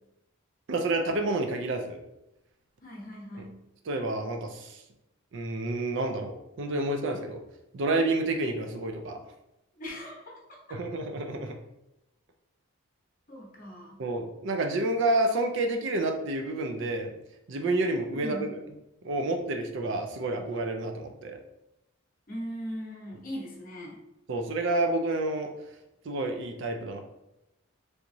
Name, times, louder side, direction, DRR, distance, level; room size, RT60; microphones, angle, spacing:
voice 1, 0.7-2.0 3.4-3.5 3.9-4.8 5.3-7.4 7.7-9.2 10.7-11.6 14.0-17.1 17.5-18.5 19.0-21.4 24.3-25.5 26.0-27.0, right 2 dB, 55° right, 5 dB, 0.4 m, -29 dB
voice 2, 2.8-3.6 9.8-10.6 13.3-14.0 18.1-18.5 22.3-24.0, equal, 40° left, -2 dB, 0.8 m, -39 dB
3.4 x 2.9 x 2.6 m, 0.90 s
head